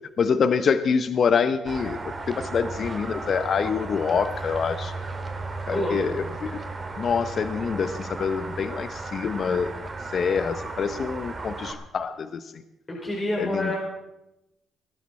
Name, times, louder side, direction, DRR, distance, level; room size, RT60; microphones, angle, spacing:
voice 1, 0.2-2.0 2.3-4.9 5.7-6.1 6.4-6.6 7.0-9.7 10.1-12.4 13.4-13.7, left 6 dB, 55° left, 11 dB, 0.8 m, -25 dB
sound 1, 1.7-11.7, right 3 dB, 30° right, 2.5 m, -35 dB
voice 2, 5.7-6.2 12.9-13.8, left 1 dB, 25° left, -4 dB, 5.2 m, -27 dB
21.0 x 12.5 x 4.3 m, 0.92 s
cardioid pair, 90°, 0 cm